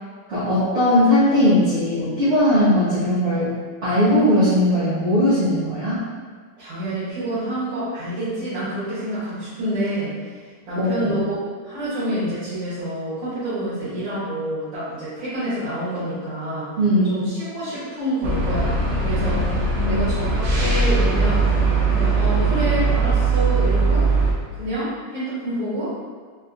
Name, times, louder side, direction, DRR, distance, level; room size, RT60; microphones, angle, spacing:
voice 1, 0.3-3.5 3.8-6.0 10.8-11.1 16.8-17.3 19.7-20.0, left 1 dB, 45° right, -13 dB, 1.3 m, -19 dB
voice 2, 6.6-10.1 10.7-16.7 17.1-21.5 21.9-24.1 24.6-25.9, right 1 dB, 90° right, -13 dB, 2.0 m, -27 dB
sound 1, 18.2-24.3, right 3 dB, 60° right, 0.6 m, -20 dB
4.3 x 3.3 x 2.5 m, 1.5 s
omnidirectional pair, 2.0 m